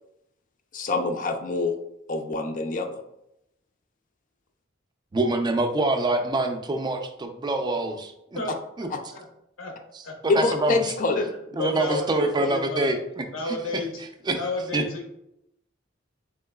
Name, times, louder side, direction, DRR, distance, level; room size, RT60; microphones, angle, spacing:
voice 1, 0.7-1.8 2.1-3.0 8.9-9.0 10.3-11.2 11.9-12.0, left 3 dB, 40° left, 6 dB, 0.4 m, -25 dB
voice 2, 5.1-8.4 8.8-8.9 9.9-10.9 11.6-13.8 14.3-14.4 14.7-14.8, right 2 dB, 20° right, 6 dB, 0.4 m, -26 dB
voice 3, 11.5-12.9 13.3-13.9 14.3-15.1, left 3 dB, 85° left, 2 dB, 0.8 m, -31 dB
3.8 x 3.6 x 2.2 m, 0.80 s
head